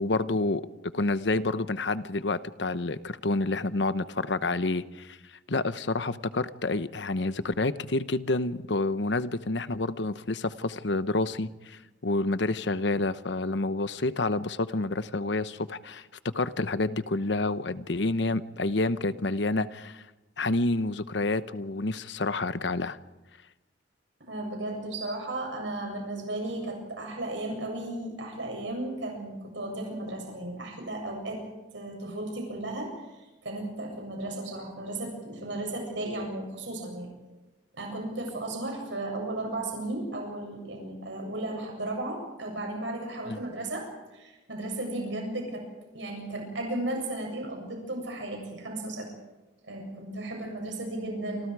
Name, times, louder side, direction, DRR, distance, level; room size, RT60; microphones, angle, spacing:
voice 1, 0.0-5.2 5.5-20.0 20.4-23.0 43.3-43.4, left 2 dB, 70° left, 13 dB, 1.0 m, -29 dB
voice 2, 24.2-31.4 31.7-37.1 37.7-43.9 44.1-45.6 45.9-49.1 49.6-51.5, right 2 dB, 80° right, 1 dB, 7.6 m, -35 dB
28.0 x 26.5 x 4.9 m, 1.1 s
head